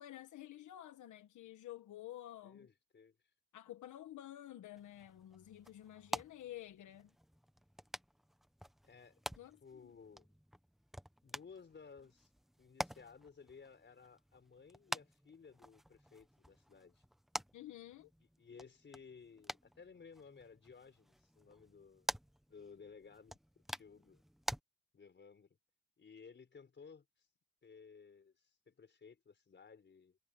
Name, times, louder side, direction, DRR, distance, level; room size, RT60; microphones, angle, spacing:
voice 1, 0.0-2.7 3.5-7.1 9.4-9.9 17.5-18.1, left 13 dB, 85° left, 1.4 m, -51 dB
voice 2, 2.4-3.2 8.8-9.2 9.6-10.3 11.2-12.3 12.6-17.0 18.2-22.1 22.5-24.2 24.9-25.6 26.0-27.3 27.6-30.2, left 5 dB, 40° left, 4.6 m, -58 dB
sound 1, 4.8-24.6, equal, ahead, 1.3 m, -48 dB
cardioid pair, 115°, 29 cm